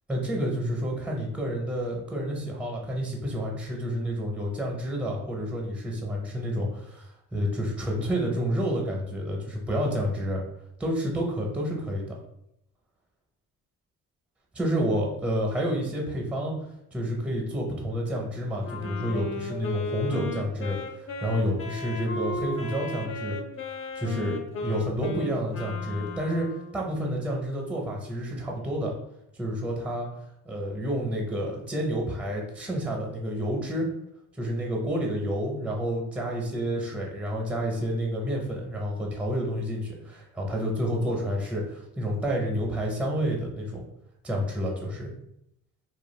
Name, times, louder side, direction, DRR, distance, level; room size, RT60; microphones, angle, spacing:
voice 1, 0.1-10.4 10.8-12.2 14.5-16.5 16.9-23.4 24.0-24.3 24.6-26.5 26.7-28.9 29.3-30.1 30.4-33.9 34.3-43.9 44.2-45.1, equal, 5° right, -1 dB, 0.6 m, -29 dB
Wind instrument woodwind instrument, 18.6-26.9, left 2 dB, 45° left, 0.5 m, -35 dB
2.4 x 2.2 x 3.1 m, 0.80 s
cardioid pair, 110°, 32 cm